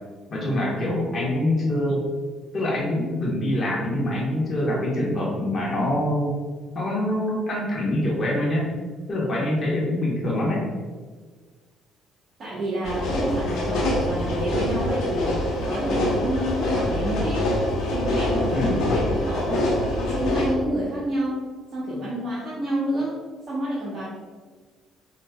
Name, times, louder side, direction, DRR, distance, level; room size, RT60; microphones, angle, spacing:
voice 1, 0.3-2.0 2.5-6.3 6.7-8.7 9.1-10.6 18.5-18.8, left 1 dB, 40° left, -3 dB, 1.4 m, -24 dB
voice 2, 12.4-17.5 17.9-21.5 21.7-23.2 23.5-24.0, right 1 dB, 45° right, -8 dB, 1.2 m, -29 dB
sound 1, 12.8-20.5, left 1 dB, 75° left, 1.1 m, -25 dB
4.7 x 3.1 x 2.4 m, 1.5 s
supercardioid pair, 75°, 0 cm